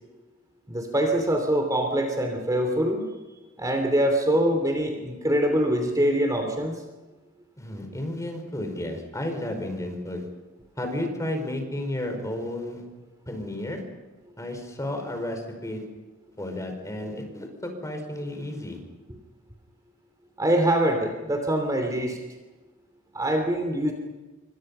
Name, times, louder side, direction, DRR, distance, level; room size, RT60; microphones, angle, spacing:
voice 1, 0.7-3.0 3.6-6.8 20.4-22.2 23.1-23.9, right 1 dB, 20° right, 3 dB, 3.0 m, -24 dB
voice 2, 7.6-10.3 10.8-12.8 13.3-13.8 14.4-15.9 16.4-18.8, left 1 dB, 15° left, 5 dB, 5.1 m, -32 dB
28.0 x 25.0 x 5.7 m, 1.2 s
head